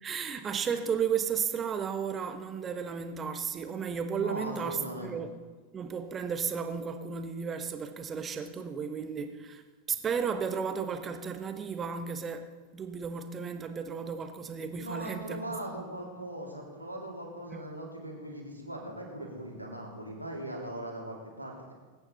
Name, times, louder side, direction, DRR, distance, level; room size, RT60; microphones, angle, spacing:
voice 1, 0.0-5.3 5.7-9.6 9.9-15.8, right 6 dB, 25° right, 8 dB, 1.2 m, -34 dB
voice 2, 4.2-5.1 14.8-21.7, right 1 dB, 85° right, -3 dB, 3.4 m, -40 dB
21.0 x 9.8 x 4.1 m, 1.4 s
figure-of-eight pair, 90°, 0 cm